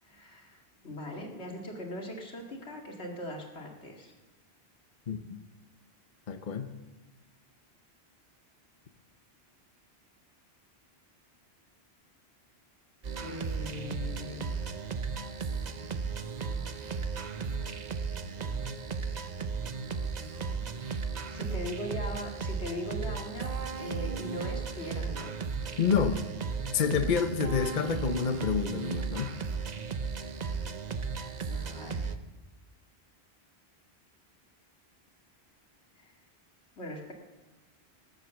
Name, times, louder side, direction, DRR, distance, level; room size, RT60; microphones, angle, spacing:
voice 1, 0.0-4.1 13.2-14.6 16.5-16.8 20.4-20.5 21.3-23.5 23.8-25.4 31.5-32.1 36.0-36.2 36.8-37.1, left 1 dB, 90° left, 1 dB, 2.4 m, -40 dB
voice 2, 5.1-5.4 6.3-6.7 25.8-26.3 26.7-29.3, left 6 dB, 50° left, 8 dB, 0.9 m, -28 dB
sound 1, 13.0-32.2, right 5 dB, 45° right, 0.8 m, -35 dB
19.0 x 7.9 x 6.9 m, 1.1 s
omnidirectional pair, 1.1 m